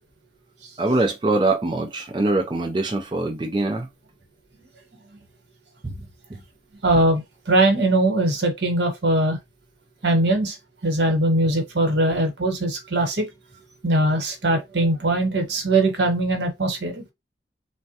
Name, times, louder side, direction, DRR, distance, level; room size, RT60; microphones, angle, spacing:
voice 1, 0.8-3.9 5.8-5.9 6.3-6.4, right 2 dB, 25° right, 0.4 m, -23 dB
voice 2, 6.8-9.4 10.0-10.6 10.8-13.3 13.8-17.0, right 1 dB, 85° right, 1.0 m, -21 dB
3.4 x 2.1 x 2.7 m
head